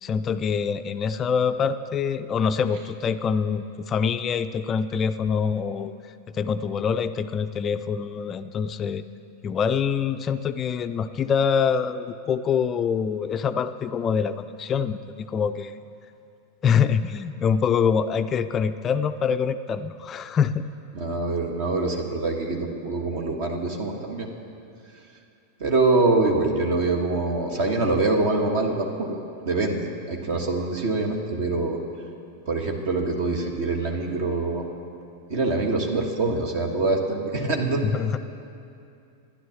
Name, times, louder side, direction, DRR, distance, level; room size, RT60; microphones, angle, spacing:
voice 1, 0.0-5.9 6.3-9.0 9.4-15.8 16.6-20.6 30.3-30.4 37.9-38.2, left 6 dB, 25° left, 11 dB, 0.4 m, -25 dB
voice 2, 20.9-24.3 25.6-29.2 29.4-31.8 32.5-34.7 35.3-37.8, right 3 dB, 50° right, 2 dB, 1.3 m, -24 dB
12.5 x 10.0 x 7.0 m, 2.5 s
figure-of-eight pair, 90°, 0 cm